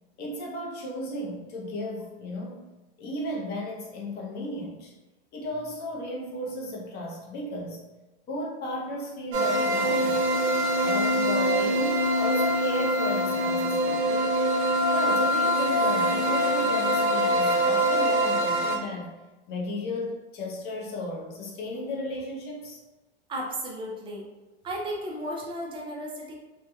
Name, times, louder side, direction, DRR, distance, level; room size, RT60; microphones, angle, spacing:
voice 1, 0.2-2.7 3.0-4.9 5.3-7.8 8.3-10.3 10.8-14.4 14.9-19.1 19.5-22.8, left 1 dB, 30° left, -2 dB, 0.6 m, -34 dB
sound 1, 9.3-18.8, equal, 90° right, 0.6 m, -24 dB
voice 2, 23.3-24.3 24.6-26.3, right 1 dB, 15° right, -2 dB, 0.4 m, -34 dB
3.0 x 2.1 x 2.3 m, 1.1 s
supercardioid pair, 125°, 32 cm